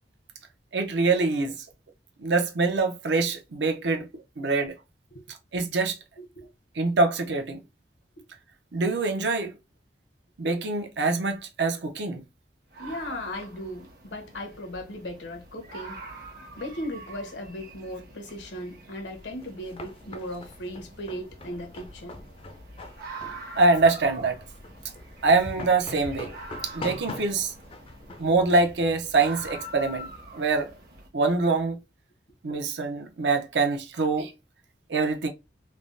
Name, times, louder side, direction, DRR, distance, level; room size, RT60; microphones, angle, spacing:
voice 1, 0.7-1.5 2.2-4.1 4.4-4.7 5.5-6.0 6.8-7.6 8.7-9.5 10.4-12.2 23.5-24.4 25.2-26.3 26.6-27.5 28.2-30.7 31.1-31.8 32.4-34.3 34.9-35.3, right 3 dB, 80° right, 0.6 m, -24 dB
voice 2, 6.2-6.5 12.8-16.0 16.6-22.2, left 1 dB, 90° left, 0.9 m, -37 dB
sound 1, 12.7-31.1, right 2 dB, 55° right, 0.9 m, -45 dB
sound 2, 19.2-29.6, left 2 dB, 30° left, 0.4 m, -42 dB
3.3 x 2.1 x 2.5 m
head